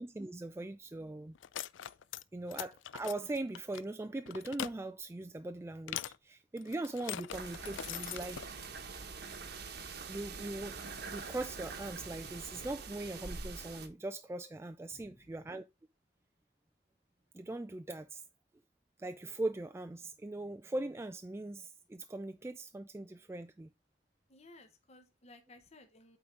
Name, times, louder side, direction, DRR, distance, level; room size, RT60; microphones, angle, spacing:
voice 1, 0.0-1.4 2.3-8.5 10.1-10.8 11.1-15.6 17.3-18.2 19.0-23.7, right 2 dB, 15° right, 0.3 m, -40 dB
sound 1, 1.4-2.2 2.5-3.8 4.3-4.7 5.9-6.2 6.6-8.5, left 11 dB, 80° left, 0.4 m, -41 dB
sound 2, 7.3-13.9, right 4 dB, 60° right, 1.2 m, -44 dB
voice 2, 14.9-15.4 24.3-26.2, left 2 dB, 35° left, 1.1 m, -58 dB
8.6 x 3.9 x 4.5 m
head